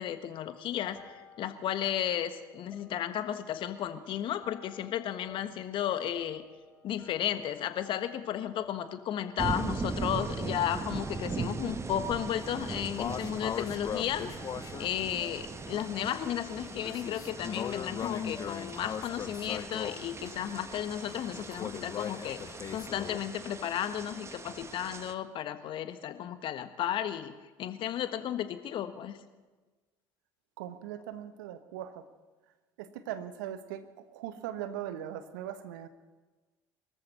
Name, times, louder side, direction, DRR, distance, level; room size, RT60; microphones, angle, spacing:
voice 1, 0.0-6.4 6.8-14.4 14.8-27.3 27.6-29.2, left 10 dB, 55° left, 10 dB, 1.4 m, -34 dB
sound 1, 0.7-20.0, left 3 dB, 10° left, 4.1 m, -55 dB
sound 2, 9.4-25.1, right 4 dB, 25° right, 1.2 m, -40 dB
sound 3, 12.3-23.2, left 8 dB, 35° left, 0.4 m, -40 dB
voice 2, 30.6-32.1 32.8-35.9, right 11 dB, 75° right, 11 dB, 1.2 m, -40 dB
23.5 x 14.0 x 4.3 m, 1.3 s
hypercardioid pair, 65°, 11 cm